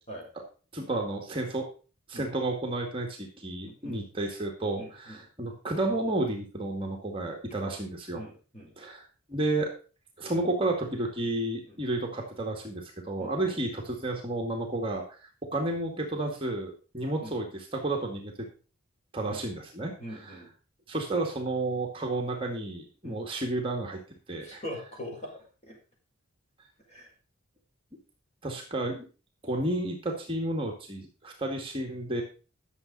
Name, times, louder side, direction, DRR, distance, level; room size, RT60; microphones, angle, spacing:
voice 1, 0.7-1.6 2.1-8.2 8.8-9.0 9.3-9.7 10.2-18.5 19.1-19.9 20.9-24.0 24.3-24.6 28.4-29.0 29.4-32.2, right 2 dB, 25° right, 1 dB, 2.0 m, -31 dB
voice 2, 3.6-4.0 4.7-5.2 8.1-8.7 11.7-11.8 13.2-13.4 17.2-17.3 19.3-19.4 20.0-20.5 23.0-23.2 24.4-25.8 26.9-27.1, equal, 30° left, -1 dB, 5.2 m, -42 dB
11.5 x 7.3 x 5.4 m, 0.36 s
head